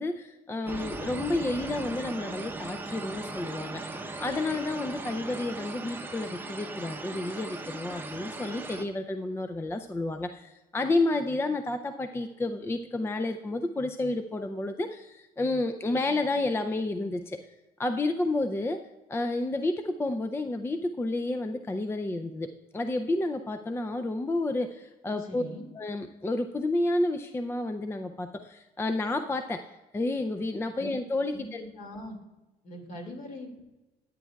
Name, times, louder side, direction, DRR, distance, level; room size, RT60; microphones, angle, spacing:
voice 1, 0.0-17.4 17.8-18.8 19.1-25.4 25.8-29.7 29.9-31.6, left 2 dB, 15° left, 7 dB, 0.4 m, -30 dB
sound 1, 0.7-8.8, right 2 dB, 10° right, 0.7 m, -38 dB
voice 2, 25.1-25.7 30.8-31.0 31.3-31.5 31.8-32.2 32.6-33.6, left 1 dB, 50° left, 3 dB, 2.3 m, -41 dB
13.5 x 8.8 x 2.3 m, 1.1 s
cardioid pair, 110°, 17 cm